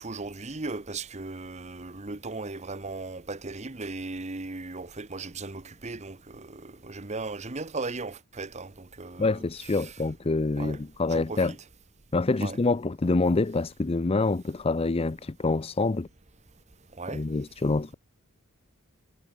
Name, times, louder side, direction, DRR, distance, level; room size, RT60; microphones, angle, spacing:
voice 1, 0.0-9.4 9.8-9.9 10.6-10.8 11.1-11.6 12.4-12.6 17.0-17.2, right 3 dB, 30° right, 1.1 m, -37 dB
voice 2, 9.2-11.5 12.1-16.1 17.1-17.9, left 3 dB, 25° left, 0.5 m, -26 dB
head